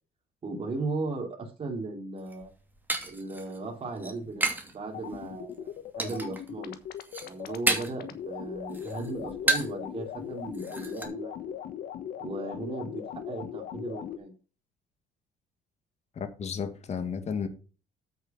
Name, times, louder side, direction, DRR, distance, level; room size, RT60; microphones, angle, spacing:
voice 1, 0.4-2.5 3.0-4.5 4.7-6.7 7.2-11.5 12.2-14.3, right 3 dB, 35° right, 2.9 m, -36 dB
sound 1, 2.2-4.7 5.1-5.6 6.0-6.5 6.8-8.1 8.4-9.9 10.2-10.3 10.5-11.1, right 2 dB, 10° right, 2.6 m, -31 dB
sound 2, 4.9-14.2, left 10 dB, 65° left, 1.4 m, -39 dB
voice 2, 16.2-17.5, left 6 dB, 40° left, 1.8 m, -33 dB
8.1 x 6.9 x 5.7 m
cardioid pair, 110°, 17 cm